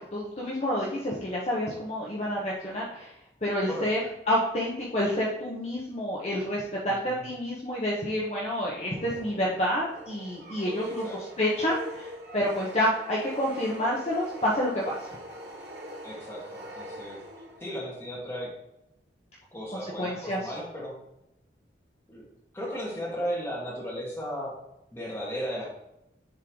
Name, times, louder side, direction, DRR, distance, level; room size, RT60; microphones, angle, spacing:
voice 1, 0.1-3.1 3.4-4.0 4.3-11.1 11.4-12.1 12.3-15.0 20.0-20.5, equal, 35° left, -5 dB, 0.9 m, -28 dB
voice 2, 3.7-4.0 6.9-7.3 11.0-11.2 16.0-17.2 17.6-18.5 19.5-20.9 22.1-22.2 22.5-24.5 24.9-25.7, equal, 15° left, -6 dB, 2.1 m, -35 dB
sound 1, 8.7-17.8, equal, 70° right, 1.1 m, -42 dB
10.5 x 3.7 x 3.1 m, 0.85 s
head